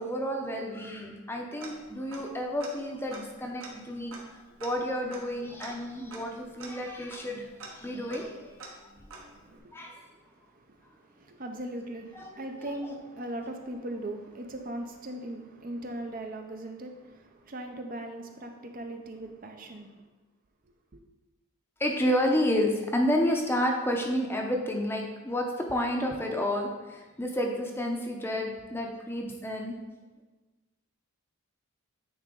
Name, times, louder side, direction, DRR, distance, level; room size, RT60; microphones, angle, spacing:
voice 1, 0.0-4.1 4.6-8.5 9.7-10.0 12.1-12.7 21.8-29.8, equal, 10° left, 1 dB, 0.6 m, -30 dB
Tick-tock, 1.6-2.3 2.6-2.7 3.1-9.6, right 3 dB, 65° right, 1.1 m, -47 dB
voice 2, 9.2-19.9 20.9-21.0, right 1 dB, 40° right, 4 dB, 0.5 m, -40 dB
9.5 x 3.8 x 3.8 m, 1.2 s
head